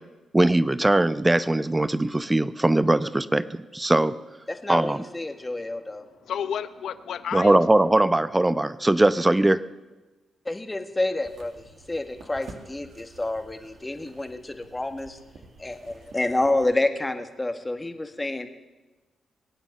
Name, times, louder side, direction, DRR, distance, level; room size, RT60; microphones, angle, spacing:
voice 1, 0.3-4.1 4.7-5.0 7.3-9.6, right 1 dB, 20° right, 15 dB, 0.8 m, -21 dB
voice 2, 4.5-6.0 10.4-15.2 15.6-18.5, left 2 dB, 20° left, 7 dB, 1.7 m, -29 dB
voice 3, 6.2-7.6, left 8 dB, 70° left, 14 dB, 0.8 m, -31 dB
sound 1, 11.2-16.7, right 4 dB, 70° right, 2.1 m, -50 dB
22.0 x 8.9 x 6.8 m, 1.2 s
supercardioid pair, 50°, 0 cm